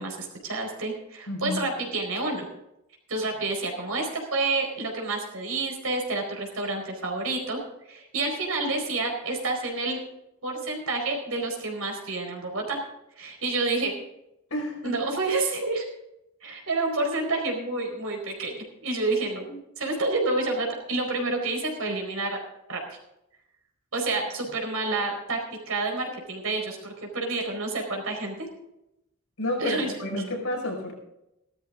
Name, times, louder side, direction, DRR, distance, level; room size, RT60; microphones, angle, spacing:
voice 1, 0.0-2.5 3.1-7.6 7.9-10.0 10.4-12.8 13.2-14.0 14.8-15.9 16.4-22.4 22.7-23.0 23.9-25.4 25.7-28.5 29.6-29.9, right 3 dB, 75° right, 2 dB, 4.5 m, -29 dB
voice 2, 1.3-1.6 14.5-15.0 29.4-30.9, left 1 dB, 85° left, -1 dB, 5.4 m, -30 dB
15.5 x 13.0 x 3.8 m, 0.85 s
head